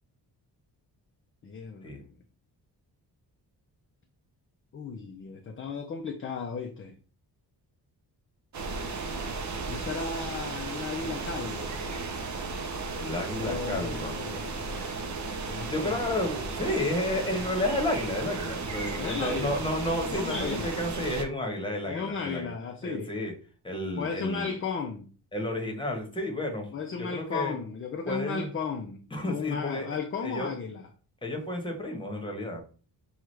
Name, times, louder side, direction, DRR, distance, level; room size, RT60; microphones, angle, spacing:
voice 1, 1.4-2.0 4.7-6.9 9.7-11.9 13.4-16.0 19.0-19.6 20.1-20.8 21.9-23.1 24.0-25.1 26.7-30.9, left 5 dB, 30° left, 0.5 m, -35 dB
sound 1, 8.5-21.2, right 3 dB, 45° right, 0.6 m, -34 dB
voice 2, 12.9-14.1 15.5-22.5 22.8-23.3 23.6-24.5 25.3-26.7 27.0-27.6 28.1-28.5 29.1-29.9 30.2-30.5 31.2-32.6, left 1 dB, 10° left, 1.1 m, -31 dB
5.9 x 2.4 x 3.2 m
wide cardioid pair, 130°, 41 cm